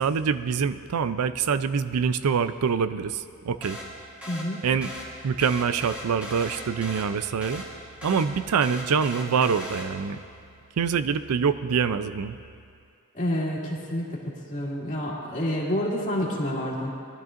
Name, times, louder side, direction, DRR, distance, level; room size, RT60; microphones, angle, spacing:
voice 1, 0.0-3.8 4.6-4.9 5.2-7.6 8.0-10.2 10.8-12.4, right 6 dB, 80° right, 13 dB, 0.4 m, -25 dB
sound 1, 3.6-10.2, equal, 5° right, 2.2 m, -39 dB
voice 2, 4.3-4.6 13.1-14.2 14.5-16.9, equal, 35° left, -5 dB, 2.2 m, -28 dB
20.0 x 12.0 x 2.5 m, 2.3 s
head